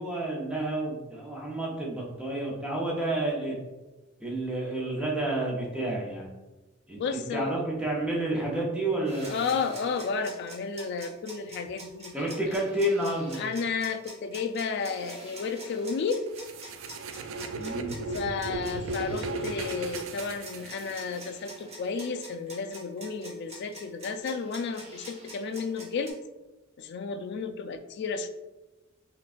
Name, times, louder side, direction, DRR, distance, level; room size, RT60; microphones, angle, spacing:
voice 1, 0.0-3.6 4.2-6.3 6.9-9.5 12.1-13.4 17.6-18.0, right 1 dB, 5° right, -3 dB, 0.7 m, -30 dB
voice 2, 7.0-7.6 9.3-12.1 13.4-16.2 18.1-26.2 26.8-28.3, left 5 dB, 55° left, 9 dB, 0.3 m, -32 dB
sound 1, 9.1-26.1, right 1 dB, 30° right, 0.9 m, -46 dB
sound 2, 16.3-21.3, right 3 dB, 75° right, 0.3 m, -35 dB
5.7 x 2.3 x 2.5 m, 1.1 s
head